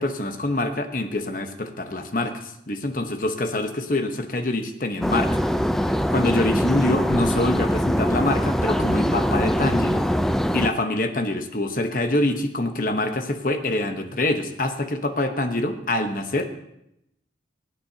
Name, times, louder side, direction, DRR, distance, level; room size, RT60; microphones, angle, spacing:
voice 1, 0.0-5.4 6.1-10.0 10.5-16.4, left 2 dB, 45° left, 6 dB, 1.1 m, -25 dB
sound 1, 5.0-10.7, equal, ahead, 0.3 m, -22 dB
23.5 x 8.8 x 2.8 m, 0.81 s
head